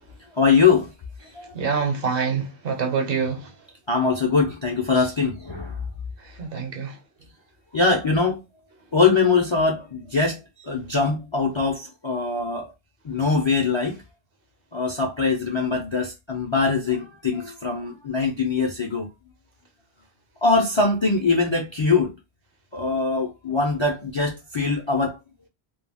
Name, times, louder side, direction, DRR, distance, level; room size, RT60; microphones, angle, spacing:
voice 1, 0.3-0.9 1.3-1.8 3.9-5.8 7.7-8.4 8.9-12.7 13.0-14.0 14.7-19.1 20.4-22.1 22.7-25.2, left 4 dB, 40° left, 0.4 m, -22 dB
voice 2, 1.5-3.5 6.4-7.0, right 5 dB, 60° right, 0.9 m, -26 dB
2.3 x 2.3 x 3.4 m
omnidirectional pair, 1.1 m